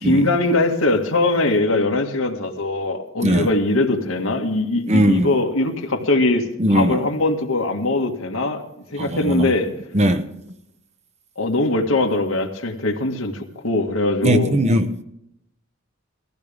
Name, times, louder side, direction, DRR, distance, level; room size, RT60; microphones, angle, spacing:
voice 1, 0.0-8.6 8.9-9.7 11.4-14.6, left 2 dB, 85° left, 2.1 m, -21 dB
voice 2, 4.9-5.3 6.6-7.0 9.0-9.5 9.9-10.4 14.2-15.0, equal, 35° right, 1.1 m, -19 dB
19.5 x 15.0 x 3.6 m
head